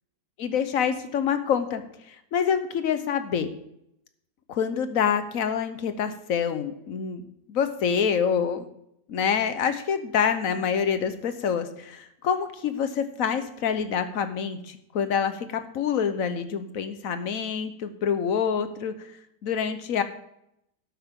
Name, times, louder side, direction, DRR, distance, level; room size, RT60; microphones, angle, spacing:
voice 1, 0.4-3.5 4.5-7.2 7.5-8.7 9.1-19.1 19.4-20.0, left 7 dB, 55° left, 9 dB, 1.2 m, -26 dB
12.0 x 8.5 x 3.7 m, 0.77 s
omnidirectional pair, 2.0 m